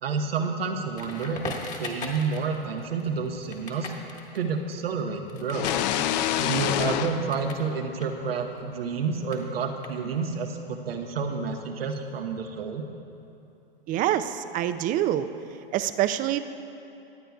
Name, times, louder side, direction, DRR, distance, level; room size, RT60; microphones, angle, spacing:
voice 1, 0.0-3.9 4.3-5.7 6.4-12.8, right 5 dB, 85° right, 4 dB, 1.0 m, -29 dB
Crackle, 1.0-7.7 7.9-10.4, left 4 dB, 25° left, 1.6 m, -41 dB
sound 1, 5.5-8.3, left 11 dB, 50° left, 0.5 m, -28 dB
voice 2, 13.9-15.3 15.7-16.4, right 12 dB, 30° right, 11 dB, 0.4 m, -25 dB
24.5 x 9.0 x 2.3 m, 2.8 s
hypercardioid pair, 110°, 29 cm